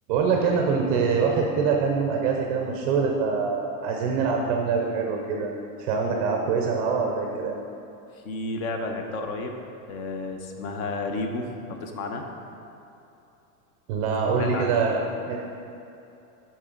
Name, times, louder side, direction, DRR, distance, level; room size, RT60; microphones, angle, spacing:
voice 1, 0.1-5.5 5.8-7.5 13.9-15.0 15.3-15.4, right 5 dB, 25° right, 1 dB, 0.4 m, -24 dB
voice 2, 8.1-9.5 9.9-12.3 14.4-15.0, left 2 dB, 60° left, 4 dB, 1.1 m, -32 dB
13.0 x 4.3 x 3.8 m, 2.8 s
supercardioid pair, 160°, 46 cm